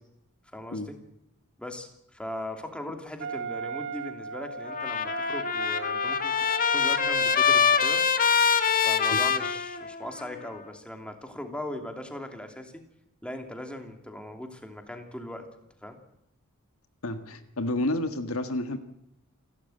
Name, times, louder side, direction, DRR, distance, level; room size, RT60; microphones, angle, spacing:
voice 1, 0.5-1.0 1.6-6.4 6.7-8.0 8.8-12.8 13.2-15.5 15.8-16.0, left 1 dB, 5° left, 4 dB, 2.8 m, -39 dB
Wind instrument woodwind instrument, 3.2-8.5, right 4 dB, 60° right, 2.1 m, -37 dB
Trumpet, 4.7-10.3, left 6 dB, 40° left, 1.4 m, -24 dB
voice 2, 17.0-18.8, left 1 dB, 70° left, 8 dB, 1.6 m, -30 dB
29.0 x 12.0 x 9.1 m, 0.80 s
head